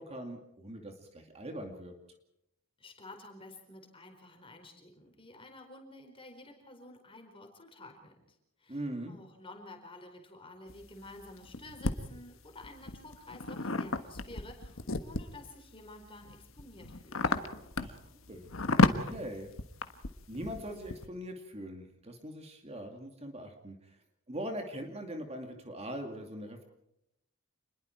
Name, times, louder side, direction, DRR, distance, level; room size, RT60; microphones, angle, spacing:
voice 1, 0.0-1.9 8.7-9.2 17.8-18.0 18.3-18.5 18.8-19.5 20.3-24.0 24.3-26.6, equal, 30° right, 4 dB, 2.3 m, -41 dB
voice 2, 2.8-17.4, left 2 dB, 25° left, 4 dB, 4.4 m, -51 dB
sound 1, 10.7-11.9 12.6-15.5 16.0-21.1, left 3 dB, 70° left, 1.5 m, -31 dB
28.0 x 21.0 x 4.6 m, 0.81 s
head